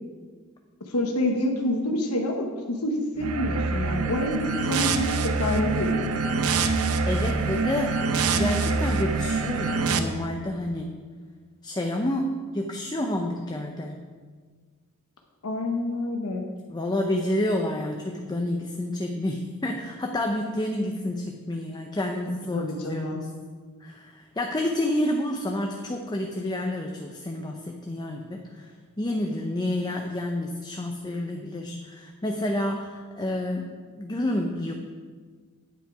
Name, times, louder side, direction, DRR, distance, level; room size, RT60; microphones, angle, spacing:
voice 1, 0.9-6.2 15.4-16.4 22.5-23.2, left 1 dB, 85° left, 2 dB, 1.1 m, -27 dB
sound 1, 3.2-10.0, right 4 dB, 80° right, 0.7 m, -25 dB
voice 2, 7.0-8.0 8.3-11.0 11.6-14.0 16.7-23.3 23.8-33.7 33.9-34.7, left 1 dB, 20° left, 2 dB, 0.6 m, -29 dB
9.1 x 7.9 x 4.8 m, 1.5 s
head